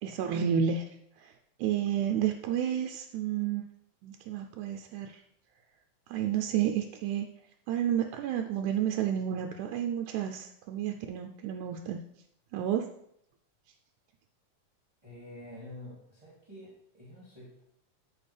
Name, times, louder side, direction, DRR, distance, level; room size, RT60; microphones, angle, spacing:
voice 1, 0.0-0.9 1.2-1.3 1.6-3.6 4.0-5.2 6.1-7.3 7.7-12.0 12.5-12.9, right 9 dB, 90° right, 4 dB, 2.0 m, -31 dB
voice 2, 15.0-17.6, left 1 dB, 15° right, -8 dB, 2.5 m, -48 dB
13.0 x 4.5 x 3.3 m, 0.75 s
omnidirectional pair, 3.4 m